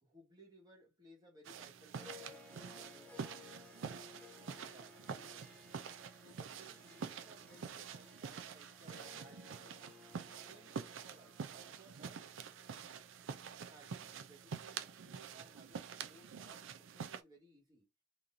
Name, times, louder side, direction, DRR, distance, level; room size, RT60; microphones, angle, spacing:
voice 1, 0.0-5.0 6.2-9.8 10.4-12.3 13.6-17.9, right 1 dB, 20° right, 1.5 m, -62 dB
sound 1, 1.4-17.2, right 6 dB, 65° right, 0.4 m, -47 dB
Harp, 1.9-14.5, left 5 dB, 5° left, 0.5 m, -60 dB
3.9 x 3.0 x 2.6 m
head